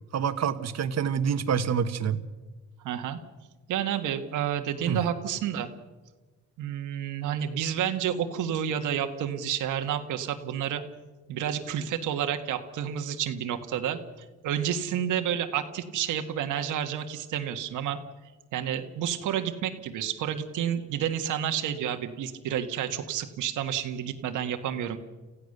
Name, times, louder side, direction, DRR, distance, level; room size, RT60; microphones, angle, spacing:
voice 1, 0.1-2.2 4.9-5.0, right 7 dB, 60° right, 10 dB, 1.4 m, -27 dB
voice 2, 2.8-3.2 3.7-5.7 6.6-10.8 11.3-14.0 14.4-18.0 18.5-25.0, right 9 dB, 85° right, 6 dB, 1.7 m, -30 dB
28.0 x 15.5 x 6.7 m, 1.3 s
cardioid pair, 90°, 30 cm